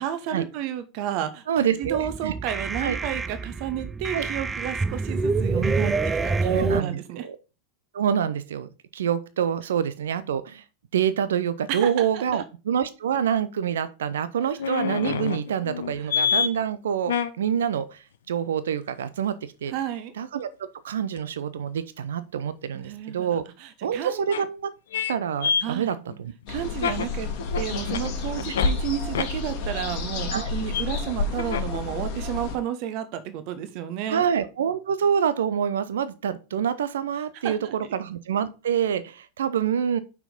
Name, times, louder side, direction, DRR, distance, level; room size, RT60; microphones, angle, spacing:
voice 1, 0.0-7.3 11.7-12.4 19.7-20.1 22.7-24.2 25.6-26.0 26.5-27.3 27.5-34.2 37.4-37.7, right 10 dB, 45° right, 12 dB, 1.0 m, -32 dB
voice 2, 1.5-2.3 2.8-3.0 4.1-4.3 6.4-7.4 7.9-10.6 10.9-19.7 20.2-20.5 20.8-23.4 23.8-24.7 25.1-26.3 30.3-30.5 34.1-40.0, right 8 dB, 60° right, 14 dB, 0.6 m, -26 dB
sound 1, 1.8-6.8, right 3 dB, 10° right, 0.4 m, -27 dB
sound 2, 14.6-16.5 17.0-17.3 21.2-21.3 22.8-22.9 24.3-24.4 24.9-25.1 25.4-28.7 29.1-29.3 30.7-30.8 31.4-31.8 32.2-32.3, left 7 dB, 60° left, 0.7 m, -27 dB
sound 3, 26.5-32.6, left 3 dB, 45° left, 1.6 m, -30 dB
5.9 x 4.6 x 5.2 m, 0.32 s
figure-of-eight pair, 90°, 0 cm